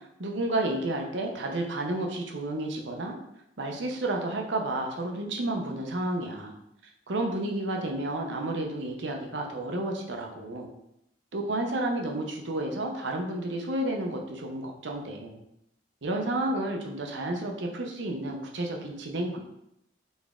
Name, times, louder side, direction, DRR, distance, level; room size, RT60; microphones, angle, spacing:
voice 1, 0.2-3.1 3.6-6.6 7.1-10.7 11.3-15.4 16.0-19.4, right 1 dB, 80° right, 2 dB, 0.8 m, -31 dB
4.2 x 3.5 x 3.6 m, 0.81 s
head